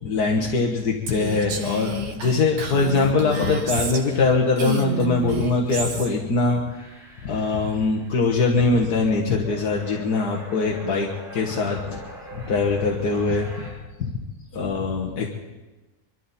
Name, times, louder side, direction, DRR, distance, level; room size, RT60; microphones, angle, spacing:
voice 1, 0.0-12.0 12.3-14.1 14.5-15.3, left 3 dB, 75° left, 0 dB, 1.9 m, -23 dB
Female speech woman speaking, 1.1-4.2 4.6-6.1, right 3 dB, 65° right, 1.9 m, -30 dB
sound 1, 1.4-13.7, equal, ahead, 5.0 m, -45 dB
24.0 x 13.5 x 4.2 m, 1.1 s
omnidirectional pair, 1.7 m